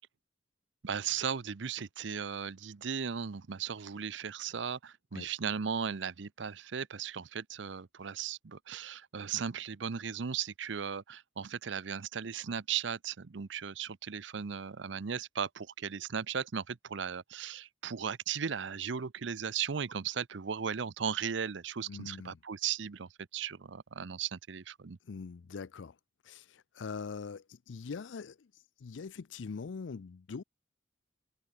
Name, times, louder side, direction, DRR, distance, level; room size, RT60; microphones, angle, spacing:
voice 1, 0.8-25.0, right 7 dB, 75° right, 0.6 m, -37 dB
voice 2, 21.8-22.4 25.0-26.0 26.2-28.5 28.8-30.4, left 5 dB, 80° left, 0.5 m, -42 dB
head